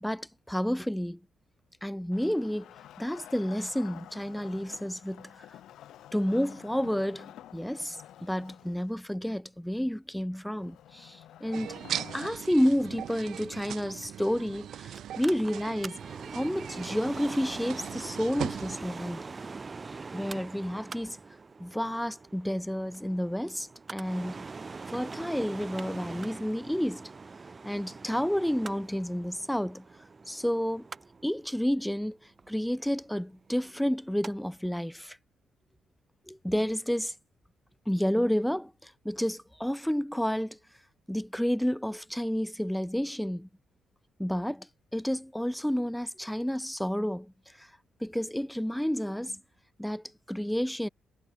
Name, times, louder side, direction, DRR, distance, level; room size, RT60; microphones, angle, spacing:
voice 1, 0.0-1.2 1.8-2.7 3.0-5.5 6.1-11.7 12.1-16.0 16.3-19.2 20.1-21.2 21.6-24.5 24.9-27.1 27.6-29.8 30.3-30.9 31.2-32.2 32.5-35.2 36.3-37.1 37.9-40.6 41.1-43.5 44.2-47.3 47.6-47.7 48.0-49.4 49.8-50.9, equal, 5° left, 0.7 m, -30 dB
Wood, 2.1-8.9 10.6-12.3, left 12 dB, 80° left, 0.8 m, -49 dB
sound 1, 11.5-18.8, right 10 dB, 70° right, 0.6 m, -39 dB
Mechanical fan, 14.9-34.3 34.7-34.8, right 4 dB, 30° right, 1.1 m, -43 dB
cardioid pair, 100°, 0 cm